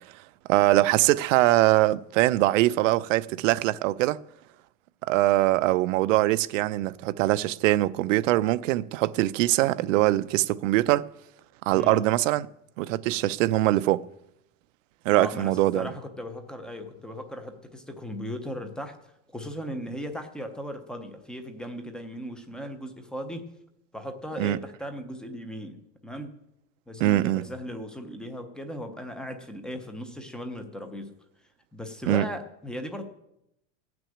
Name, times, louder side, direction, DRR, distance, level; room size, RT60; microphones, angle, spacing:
voice 1, 0.5-4.2 5.0-11.1 11.7-12.5 12.8-14.0 15.1-15.9 24.4-24.6 27.0-27.4 32.1-32.3, right 16 dB, 85° right, 0.6 m, -22 dB
voice 2, 11.7-12.0 15.1-19.0 19.3-23.5 23.9-26.4 26.9-31.1 31.7-33.0, equal, ahead, 0.4 m, -37 dB
17.0 x 6.2 x 8.5 m
supercardioid pair, 175°, 37 cm